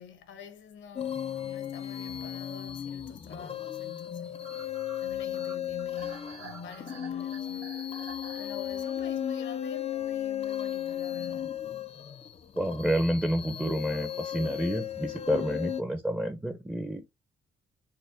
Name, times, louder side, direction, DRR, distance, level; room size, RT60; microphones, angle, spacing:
voice 1, 0.0-7.8 8.3-11.7, left 6 dB, 70° left, 1.0 m, -47 dB
sound 1, 1.0-15.8, left 10 dB, 30° left, 0.4 m, -35 dB
sound 2, 1.8-9.5, right 4 dB, 80° right, 1.8 m, -51 dB
voice 2, 12.6-17.1, equal, 5° right, 0.6 m, -29 dB
4.4 x 2.1 x 3.5 m
cardioid pair, 90°, 20 cm